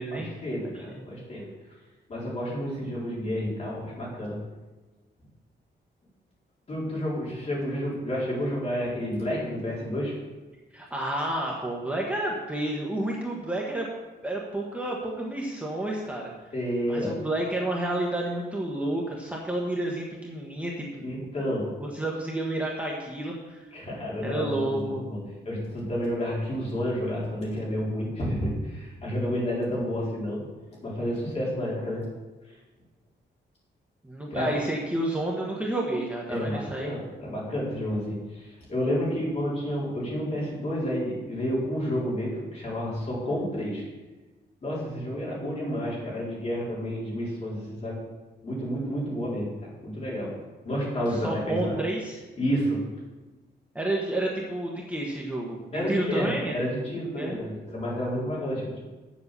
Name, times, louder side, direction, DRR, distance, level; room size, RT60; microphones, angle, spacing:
voice 1, 0.1-1.5 2.1-4.4 6.7-10.1 16.5-17.1 21.0-21.7 23.7-30.5 30.8-32.1 34.3-34.5 36.3-43.9 44.6-48.0 48.4-50.3 50.6-51.8 52.4-52.8 55.7-58.8, equal, 35° left, -6 dB, 4.1 m, -30 dB
voice 2, 0.6-1.0 10.7-13.9 14.2-16.3 16.9-21.1 21.8-23.7 24.2-25.0 34.0-36.9 51.2-52.2 53.7-56.6 57.2-57.4, right 1 dB, 5° right, -2 dB, 1.2 m, -30 dB
9.5 x 7.3 x 6.7 m, 1.2 s
wide cardioid pair, 165°, 19 cm